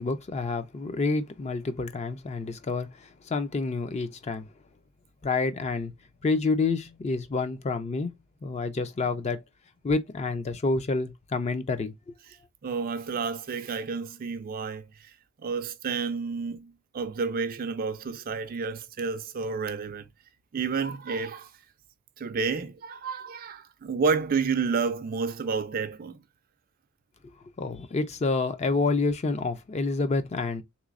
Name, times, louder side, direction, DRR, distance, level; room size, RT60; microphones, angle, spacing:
voice 1, 0.0-4.5 5.2-5.9 6.2-8.1 8.4-9.4 9.8-11.9 27.6-30.6, left 3 dB, 30° left, 0.4 m, -28 dB
voice 2, 12.6-15.1 15.4-20.1 20.5-21.5 22.2-26.2, right 5 dB, 40° right, 0.4 m, -30 dB
3.3 x 3.0 x 2.4 m
head